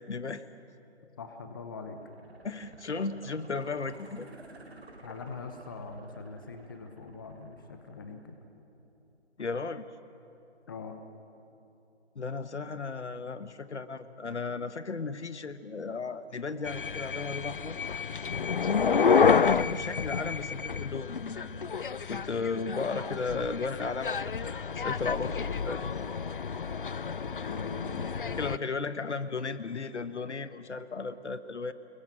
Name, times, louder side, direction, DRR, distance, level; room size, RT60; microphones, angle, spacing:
voice 1, 0.1-0.5 2.4-4.3 9.4-9.8 12.1-17.8 19.0-19.2 19.6-21.5 22.1-25.8 28.4-31.7, left 4 dB, 75° left, 12 dB, 1.4 m, -35 dB
voice 2, 1.2-2.0 5.0-8.4 10.7-11.0 18.9-19.2 27.2-28.4, left 4 dB, 20° left, 6 dB, 0.9 m, -42 dB
sound 1, 1.9-8.9 9.2-9.3, right 2 dB, 60° right, 3.6 m, -52 dB
sound 2, 16.6-28.6, left 6 dB, 50° left, 0.5 m, -29 dB
26.0 x 22.0 x 7.6 m, 2.8 s
figure-of-eight pair, 165°, 35 cm